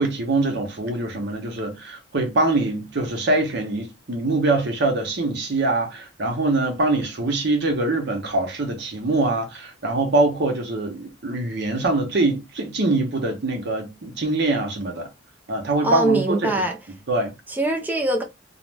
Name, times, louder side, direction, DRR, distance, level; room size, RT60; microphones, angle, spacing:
voice 1, 0.0-15.1 15.5-16.5 17.1-17.3, right 2 dB, 60° right, 0.8 m, -23 dB
voice 2, 15.8-16.8 17.5-18.2, right 2 dB, 10° right, 0.4 m, -22 dB
2.5 x 2.0 x 3.2 m
head